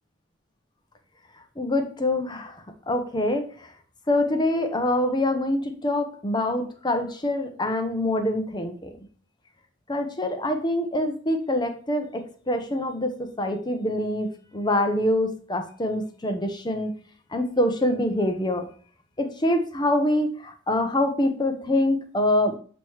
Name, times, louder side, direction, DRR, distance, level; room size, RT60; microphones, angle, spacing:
voice 1, 1.6-2.5 2.9-3.4 4.1-8.7 9.9-16.9 17.3-18.7 19.2-22.5, left 1 dB, 25° left, 6 dB, 0.9 m, -25 dB
7.5 x 3.1 x 4.6 m, 0.43 s
head